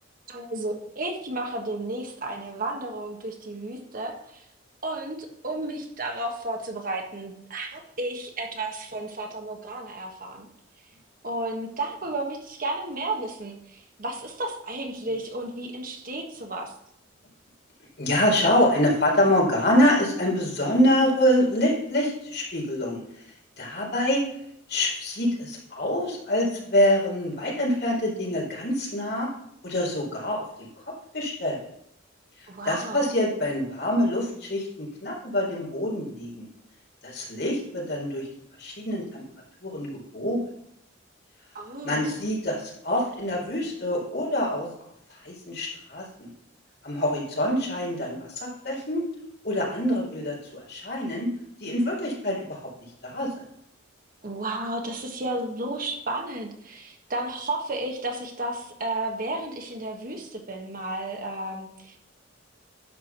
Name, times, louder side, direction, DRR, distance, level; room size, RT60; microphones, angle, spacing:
voice 1, 0.3-4.4 4.8-10.5 11.2-16.7 32.5-33.1 41.5-42.1 54.2-62.0, right 2 dB, 45° right, 3 dB, 1.5 m, -33 dB
voice 2, 18.0-23.0 23.6-24.2 24.7-29.3 29.6-30.7 31.1-31.6 32.4-36.5 37.0-38.3 38.6-39.2 39.6-40.4 41.8-44.7 45.1-46.3 46.8-49.0 49.4-51.3 51.6-52.6 53.0-53.3, left 1 dB, 60° left, -4 dB, 4.5 m, -25 dB
11.0 x 5.0 x 6.0 m, 0.74 s
head